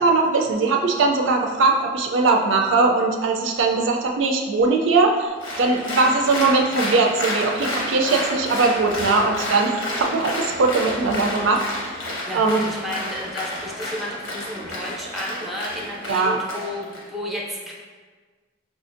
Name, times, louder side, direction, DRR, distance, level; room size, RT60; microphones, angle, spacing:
voice 1, 0.0-11.6 12.3-12.6 16.1-16.4, right 3 dB, 70° right, 2 dB, 0.4 m, -20 dB
Applause, 5.4-17.0, left 1 dB, 85° left, 0.9 m, -30 dB
voice 2, 12.3-17.7, equal, ahead, -4 dB, 0.5 m, -31 dB
4.9 x 2.5 x 2.5 m, 1.4 s
head